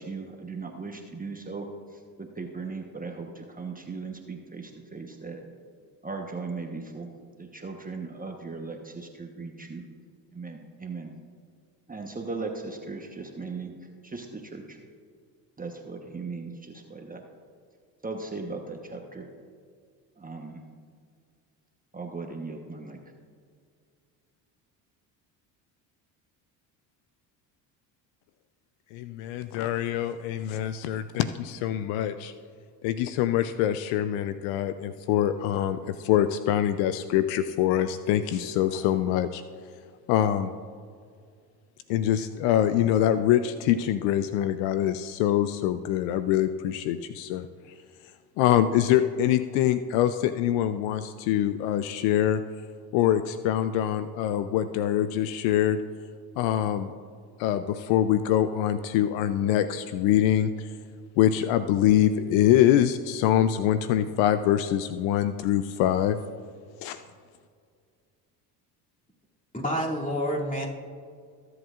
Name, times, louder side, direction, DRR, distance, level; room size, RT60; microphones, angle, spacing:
voice 1, 0.0-5.4 6.0-9.8 10.3-11.1 11.9-14.8 15.6-17.2 18.0-19.3 20.2-20.6 21.9-23.0, right 4 dB, 15° right, 2 dB, 1.1 m, -38 dB
voice 2, 28.9-32.3 32.8-39.4 40.1-40.5 41.9-47.5 48.4-52.4 52.9-55.8 56.4-56.9 57.4-60.7 61.2-66.2 66.8-67.0, left 11 dB, 70° left, 12 dB, 0.6 m, -24 dB
voice 3, 69.5-70.7, equal, 15° left, -3 dB, 2.7 m, -28 dB
22.0 x 8.0 x 2.5 m, 2.1 s
hypercardioid pair, 70°, 49 cm